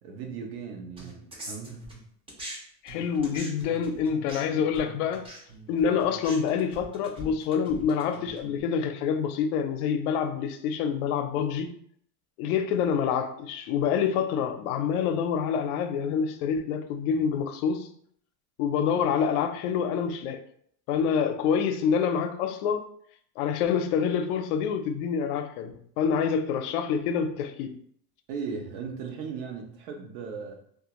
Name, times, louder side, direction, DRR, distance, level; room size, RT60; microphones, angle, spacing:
voice 1, 0.0-1.9 28.3-30.6, right 5 dB, 75° right, 0.8 m, -37 dB
sound 1, 1.0-2.6 2.9-8.6, right 1 dB, 15° right, 0.4 m, -43 dB
voice 2, 2.8-5.3 5.7-11.7 12.4-17.9 18.6-20.4 20.9-22.9 23.4-27.8, left 7 dB, 85° left, 0.5 m, -27 dB
2.4 x 2.4 x 2.9 m
supercardioid pair, 140°, 44 cm